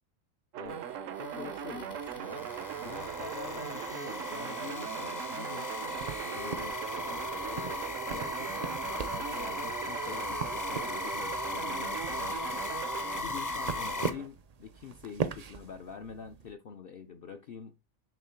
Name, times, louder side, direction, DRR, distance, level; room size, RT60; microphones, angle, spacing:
sound 1, 0.5-14.3, right 10 dB, 75° right, 1.0 m, -40 dB
sound 2, 0.7-14.1, left 3 dB, 20° left, 0.6 m, -38 dB
voice 1, 1.2-2.5 2.8-5.7 6.3-6.8 7.4-17.7, left 6 dB, 55° left, 0.8 m, -46 dB
sound 3, 6.0-16.5, right 6 dB, 45° right, 0.5 m, -41 dB
7.4 x 3.0 x 5.7 m
omnidirectional pair, 1.4 m